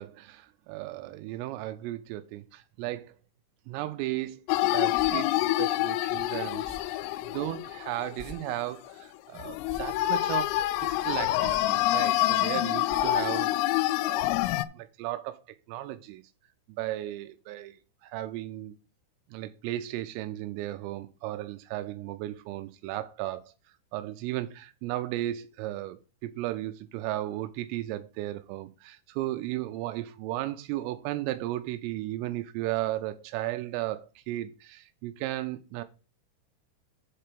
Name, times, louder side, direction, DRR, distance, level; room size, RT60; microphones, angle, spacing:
voice 1, 0.0-3.1 3.7-4.5 4.7-14.3 14.7-15.4 15.7-16.2 16.8-18.7 19.3-23.5 23.9-35.8, right 15 dB, 90° right, 3.2 m, -35 dB
sound 1, 4.5-8.5 8.9-9.0 9.4-14.7, left 15 dB, 85° left, 3.2 m, -27 dB
sound 2, 4.9-5.1 6.6-6.8 8.2-8.3 8.6-8.7 9.5-9.8 11.4-11.6 12.0-12.1 12.8-13.0 14.4-14.5 14.8-14.9, left 2 dB, 5° left, 2.2 m, -44 dB
7.6 x 4.4 x 6.8 m
omnidirectional pair, 5.7 m